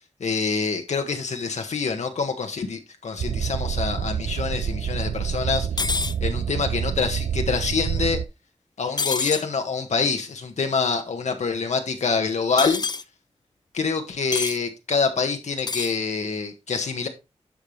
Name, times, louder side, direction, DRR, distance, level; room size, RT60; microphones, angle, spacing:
voice 1, 0.2-5.9 6.2-8.2 8.8-12.8 13.7-17.1, left 5 dB, 80° left, 1.5 m, -26 dB
sound 1, 3.2-8.3, right 8 dB, 80° right, 0.4 m, -27 dB
sound 2, 5.8-6.1 9.0-9.4 12.6-13.0 14.3-14.6 15.6-15.9, left 5 dB, 35° left, 0.5 m, -26 dB
11.0 x 5.6 x 3.3 m
wide cardioid pair, 100°, 12 cm